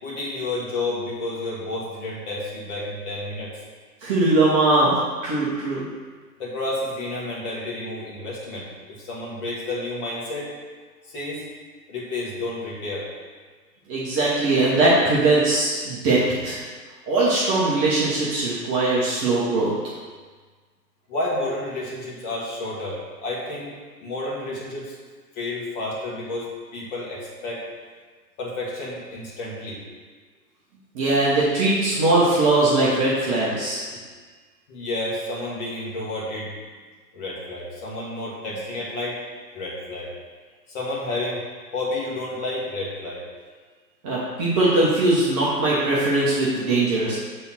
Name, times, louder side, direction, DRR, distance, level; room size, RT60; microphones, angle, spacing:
voice 1, 0.0-3.5 6.4-10.5 11.1-11.4 11.9-13.1 21.1-24.9 25.3-27.6 28.4-29.8 33.9-34.0 34.7-36.5 37.1-39.2 39.5-40.1 40.7-41.4 41.7-43.2, left 2 dB, 25° left, -5 dB, 1.7 m, -30 dB
voice 2, 4.0-5.9 13.9-16.6 17.1-19.7 30.9-33.8 44.0-47.2, right 2 dB, 20° right, -7 dB, 1.0 m, -20 dB
6.9 x 3.7 x 5.7 m, 1.5 s
figure-of-eight pair, 135°, 50 cm